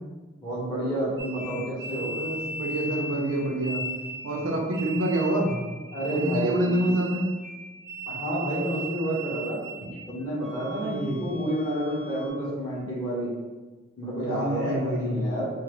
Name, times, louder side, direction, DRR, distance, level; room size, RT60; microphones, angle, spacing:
voice 1, 0.4-2.1 5.9-7.0 8.1-9.6 10.1-13.3 14.0-15.5, right 1 dB, 20° left, -9 dB, 1.2 m, -29 dB
sound 1, 1.2-10.0 10.4-12.3, right 1 dB, 30° right, 0.7 m, -38 dB
voice 2, 2.0-3.9 4.2-5.6 6.1-7.3 9.8-9.9 10.8-11.2 14.2-15.3, right 1 dB, 85° right, 0 dB, 0.5 m, -27 dB
3.7 x 2.1 x 3.1 m, 1.3 s
head